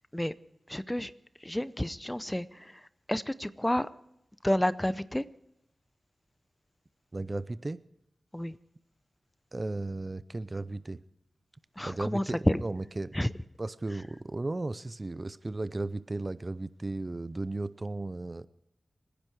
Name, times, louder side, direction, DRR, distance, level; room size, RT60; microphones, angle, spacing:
voice 1, 0.7-1.1 1.4-2.8 3.1-3.9 4.4-5.2 8.3-8.6 11.8-12.6 13.1-13.3, left 1 dB, 10° left, 15 dB, 0.6 m, -30 dB
voice 2, 7.1-7.8 9.5-11.0 11.8-13.2 13.6-18.5, right 2 dB, 35° right, 16 dB, 0.5 m, -35 dB
26.0 x 10.5 x 4.7 m, 0.80 s
wide cardioid pair, 65°, 0 cm